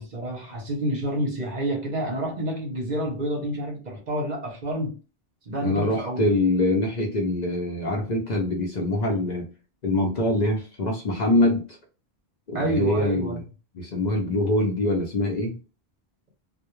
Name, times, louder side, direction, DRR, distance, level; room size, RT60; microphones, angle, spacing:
voice 1, 0.0-5.0 5.5-6.3 12.5-13.4, right 1 dB, 50° right, 0.7 m, -28 dB
voice 2, 5.6-9.5 9.8-11.6 12.5-13.4 13.7-15.6, left 1 dB, 50° left, 0.6 m, -24 dB
2.2 x 2.1 x 3.0 m
omnidirectional pair, 1.1 m